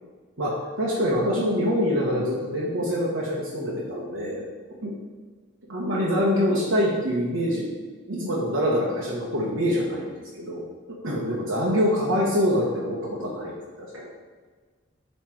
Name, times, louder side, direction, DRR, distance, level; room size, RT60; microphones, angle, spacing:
voice 1, 0.4-4.4 4.8-4.9 5.7-7.8 8.1-10.6 11.0-14.1, equal, 85° right, -5 dB, 1.1 m, -25 dB
7.5 x 3.3 x 4.9 m, 1.5 s
head